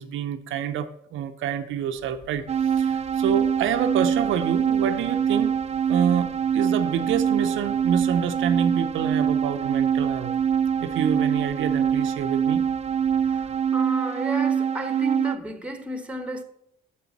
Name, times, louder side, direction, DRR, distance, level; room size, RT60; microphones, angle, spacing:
voice 1, 0.0-5.6 5.9-10.3 10.8-12.7, right 8 dB, 80° right, 0.6 m, -27 dB
sound 1, 1.9-13.6, equal, 60° left, 2.3 m, -50 dB
sound 2, 2.5-15.4, right 8 dB, 35° right, 0.5 m, -24 dB
voice 2, 13.2-16.4, right 1 dB, 5° right, 1.2 m, -33 dB
6.8 x 5.3 x 7.1 m
cardioid pair, 90°, 20 cm